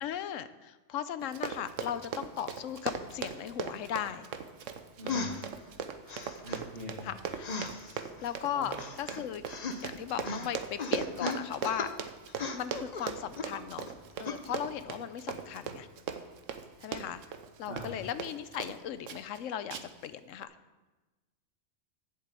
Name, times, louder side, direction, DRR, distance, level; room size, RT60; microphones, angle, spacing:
voice 1, 0.0-4.2 5.0-5.4 7.0-7.5 8.2-9.4 9.8-11.9 12.5-13.9 14.2-15.9 16.8-17.2 17.6-19.8 20.0-20.5, left 10 dB, 90° left, 13 dB, 1.0 m, -37 dB
Run, 1.2-18.8 19.1-19.4 19.7-20.1 20.4-20.5, right 7 dB, 85° right, 1.2 m, -39 dB
voice 2, 5.0-5.4 6.4-7.2 8.5-8.7 17.7-17.9, equal, 50° right, -5 dB, 2.0 m, -43 dB
sound 1, 5.1-5.5 6.1-6.6 7.4-8.3 8.8-10.0 10.2-10.5 10.8-11.9 12.3-13.9 14.2-14.4, left 4 dB, 40° left, 0.7 m, -37 dB
7.7 x 7.7 x 8.2 m, 1.2 s
omnidirectional pair, 1.3 m